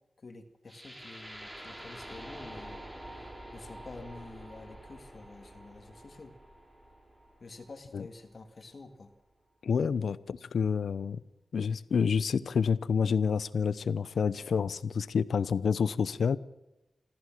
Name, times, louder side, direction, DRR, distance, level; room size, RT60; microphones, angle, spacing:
voice 1, 0.2-2.9 3.5-6.4 7.4-9.1, left 3 dB, 50° left, 2.0 m, -48 dB
sound 1, 0.7-8.7, right 1 dB, 10° right, 3.3 m, -47 dB
voice 2, 9.6-11.2 11.5-16.4, left 6 dB, 80° left, 0.8 m, -28 dB
25.5 x 14.5 x 7.5 m
wide cardioid pair, 100°, 0 cm